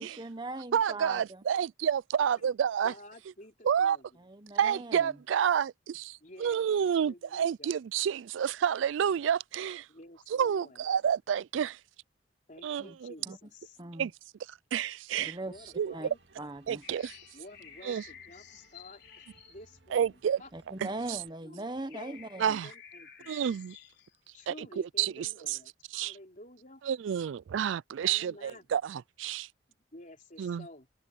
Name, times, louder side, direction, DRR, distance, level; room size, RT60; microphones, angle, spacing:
voice 1, 0.0-1.4 4.2-5.2 12.8-12.9 13.3-13.4 13.8-14.1 15.2-16.1 16.4-16.8 20.5-22.6, right 2 dB, 25° right, 1.0 m, -40 dB
voice 2, 0.7-2.9 3.6-4.0 4.6-9.9 10.3-11.8 12.6-13.1 14.0-14.1 14.5-15.4 15.8-15.9 16.7-17.2 17.8-18.0 19.9-20.4 20.8-20.9 22.4-22.7 23.3-23.8 24.5-25.6 25.9-26.2 26.8-29.5 30.4-30.7, right 8 dB, 80° right, 0.3 m, -29 dB
voice 3, 2.8-4.1 6.2-7.8 9.9-10.8 12.5-13.8 15.4-16.2 17.3-20.5 21.4-21.6 21.9-23.5 24.3-26.8 28.0-28.7 29.9-30.9, left 1 dB, 45° left, 3.9 m, -51 dB
sound 1, 15.3-21.3, right 3 dB, 65° right, 2.4 m, -63 dB
sound 2, 16.8-20.7 21.3-21.4 21.7-24.2, left 9 dB, 60° left, 4.2 m, -53 dB
head